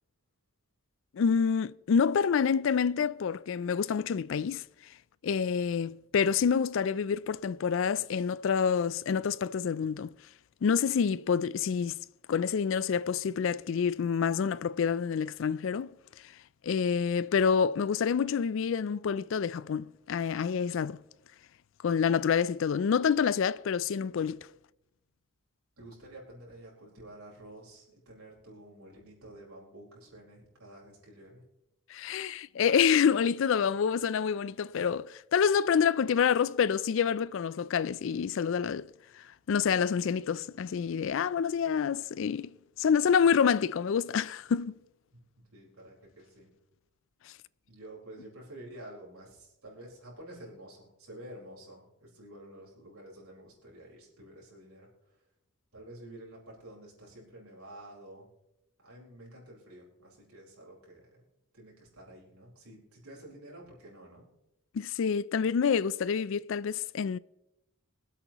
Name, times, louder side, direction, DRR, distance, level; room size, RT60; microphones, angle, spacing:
voice 1, 1.1-4.7 5.2-10.1 10.6-12.0 12.3-15.9 16.6-21.0 21.8-24.5 31.9-38.9 39.2-42.5 42.8-44.8 64.7-67.2, left 6 dB, 60° left, 0.3 m, -27 dB
voice 2, 25.8-31.4 45.1-46.5 47.7-54.9 55.7-58.3 58.8-61.2 61.5-64.3, right 1 dB, 90° right, 4.5 m, -50 dB
24.5 x 8.3 x 3.0 m
head